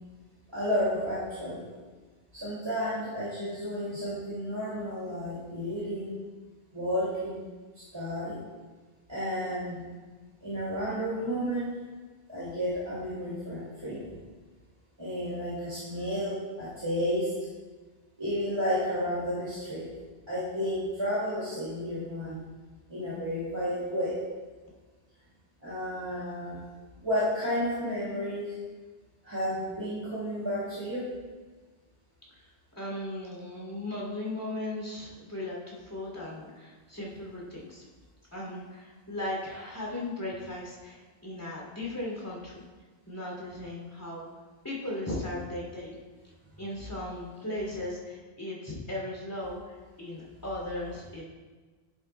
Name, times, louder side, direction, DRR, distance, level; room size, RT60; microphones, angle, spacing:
voice 1, 0.5-1.6 2.3-6.2 6.7-7.4 7.9-8.4 9.1-9.9 10.4-11.7 12.3-14.0 15.0-17.3 18.2-19.9 20.3-22.4 22.9-24.1 25.6-26.6 27.0-28.5 29.2-31.1, equal, 25° right, -10 dB, 2.3 m, -32 dB
voice 2, 32.8-37.8 38.3-42.6 43.1-44.3 44.6-46.0 46.6-51.2, left 1 dB, 20° left, -4 dB, 2.7 m, -37 dB
10.5 x 8.2 x 2.2 m, 1.3 s
omnidirectional pair, 1.1 m